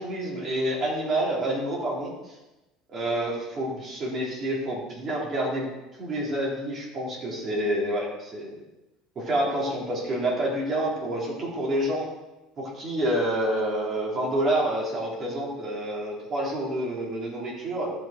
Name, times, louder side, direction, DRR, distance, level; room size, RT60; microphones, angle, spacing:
voice 1, 0.0-2.3 2.9-5.7 6.0-8.6 9.2-12.1 12.6-17.9, right 1 dB, 35° right, -4 dB, 3.9 m, -28 dB
13.5 x 6.0 x 4.5 m, 1.0 s
supercardioid pair, 120°, 0 cm